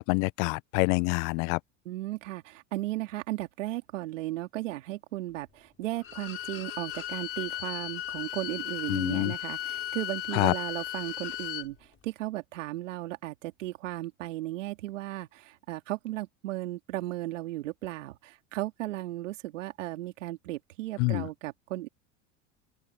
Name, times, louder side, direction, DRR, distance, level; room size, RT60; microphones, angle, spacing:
voice 1, 0.0-1.6 8.9-9.3 10.3-10.5 21.0-21.3, left 29 dB, 60° left, 0.7 m, -26 dB
voice 2, 1.8-21.9, right 16 dB, 80° right, 3.0 m, -35 dB
Bowed string instrument, 6.0-11.7, left 12 dB, 35° left, 5.3 m, -36 dB
open air
hypercardioid pair, 90°, 37 cm